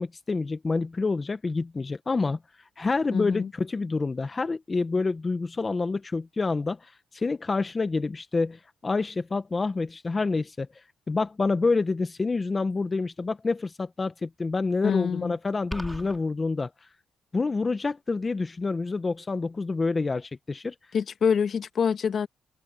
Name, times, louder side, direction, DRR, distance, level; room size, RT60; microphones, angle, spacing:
voice 1, 0.0-2.4 2.8-10.7 11.1-16.7 17.3-20.7, left 3 dB, 30° left, 1.1 m, -27 dB
voice 2, 3.1-3.5 14.8-15.4 20.9-22.3, left 6 dB, 55° left, 1.4 m, -26 dB
sound 1, 15.7-16.2, equal, 5° right, 4.1 m, -35 dB
cardioid pair, 90°, 0 cm